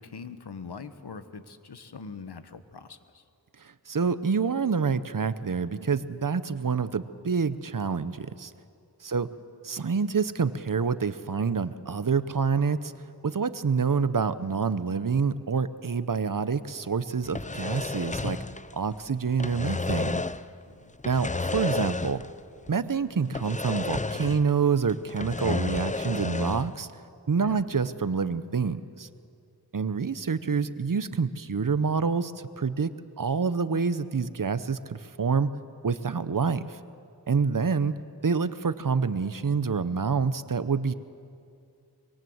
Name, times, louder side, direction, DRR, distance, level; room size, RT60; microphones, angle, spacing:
voice 1, 0.0-3.2 9.1-9.2 20.6-21.0 27.4-27.6 36.1-36.4, left 5 dB, 85° left, 10 dB, 1.2 m, -43 dB
voice 2, 3.9-8.5 9.0-9.3 9.6-12.9 13.2-18.4 18.7-20.2 21.0-22.2 22.7-26.9 27.3-29.1 29.7-32.9 33.2-35.5 35.8-36.8 37.3-37.9 38.2-40.9, right 5 dB, 55° right, 14 dB, 0.9 m, -27 dB
sound 1, 17.2-19.0 19.3-20.5 21.0-22.4 22.7-22.8 23.3-24.6 24.9-26.7, left 3 dB, 20° left, 0.6 m, -32 dB
24.5 x 22.0 x 7.9 m, 2.4 s
wide cardioid pair, 70°, 39 cm